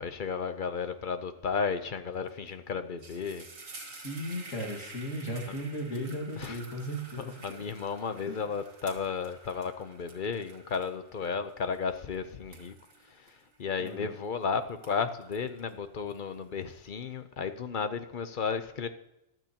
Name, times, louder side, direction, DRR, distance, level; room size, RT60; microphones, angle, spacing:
voice 1, 0.0-3.5 5.5-5.6 6.4-6.6 7.2-12.7 13.1-13.3 13.6-18.9, left 5 dB, 45° left, 10 dB, 0.8 m, -33 dB
sound 1, 2.3-2.5 2.8-14.3 14.7-16.6, right 3 dB, 75° right, 2.3 m, -50 dB
voice 2, 3.8-7.6 8.3-8.5 13.8-14.1, equal, 75° left, 0 dB, 2.4 m, -36 dB
15.0 x 12.0 x 2.9 m, 0.88 s
omnidirectional pair, 1.4 m